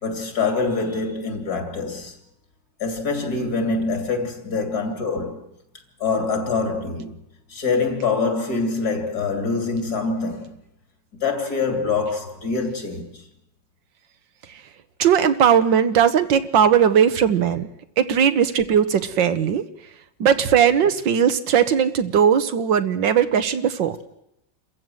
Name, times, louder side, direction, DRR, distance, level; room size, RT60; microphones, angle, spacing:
voice 1, 0.0-2.2 2.8-5.5 6.0-7.1 7.5-10.5 11.1-13.2, left 4 dB, 55° left, 3.4 m, -25 dB
voice 2, 15.0-17.7 18.0-19.6 20.2-24.0, right 8 dB, 85° right, 1.8 m, -18 dB
27.5 x 15.0 x 7.7 m
omnidirectional pair, 2.0 m